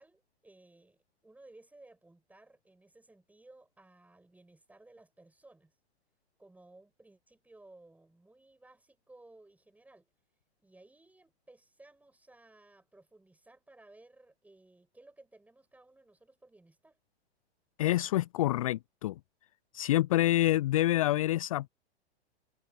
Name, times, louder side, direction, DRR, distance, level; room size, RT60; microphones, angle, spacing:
voice 1, 0.0-5.7 6.4-10.1 10.6-17.0, right 2 dB, 5° right, 7.9 m, -58 dB
voice 2, 17.8-19.1 19.7-21.7, left 15 dB, 35° left, 0.4 m, -27 dB
figure-of-eight pair, 105°, 33 cm